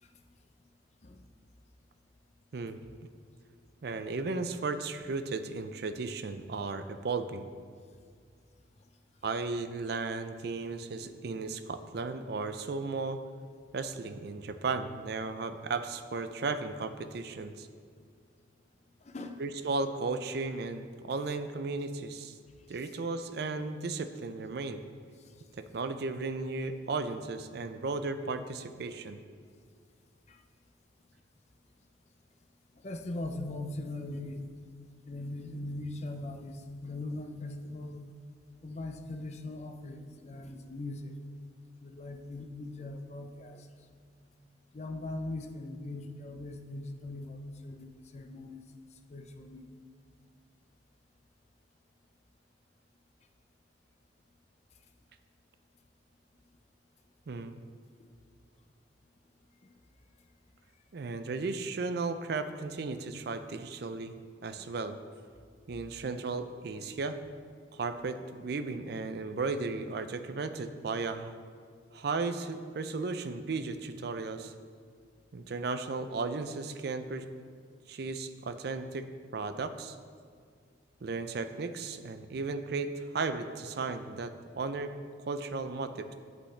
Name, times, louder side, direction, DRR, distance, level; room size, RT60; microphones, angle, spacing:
voice 1, 3.8-7.5 9.2-13.2 13.7-17.7 19.4-22.4 22.7-24.8 25.6-29.2 57.3-57.6 60.9-64.2 64.4-65.0 65.7-67.2 67.7-71.4 71.9-74.5 75.3-77.2 77.9-79.1 79.3-80.0 81.0-84.9 85.3-86.1, right 3 dB, 55° right, 10 dB, 0.4 m, -35 dB
voice 2, 19.0-19.4 30.3-30.4 32.8-34.4 35.1-38.0 38.6-41.1 41.8-43.7 44.7-48.6 49.1-49.6, left 2 dB, 35° left, 6 dB, 0.5 m, -40 dB
8.4 x 8.0 x 3.3 m, 2.1 s
head